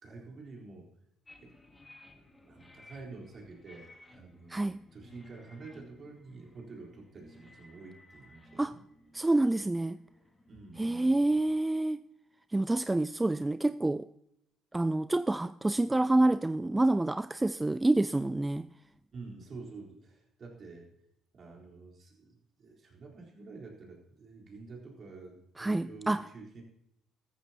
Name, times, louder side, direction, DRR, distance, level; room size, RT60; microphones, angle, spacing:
voice 1, 0.0-0.9 1.4-1.5 2.4-8.8 10.5-11.4 19.1-20.9 21.3-26.6, right 3 dB, 50° right, 3.9 m, -48 dB
sound 1, 1.3-11.1, left 2 dB, 15° left, 2.0 m, -58 dB
voice 2, 4.5-4.8 8.6-8.8 9.1-10.0 10.8-12.0 12.5-14.1 14.7-18.7 25.6-26.3, right 2 dB, 15° right, 0.3 m, -27 dB
14.0 x 13.5 x 2.9 m
hypercardioid pair, 55°, 0 cm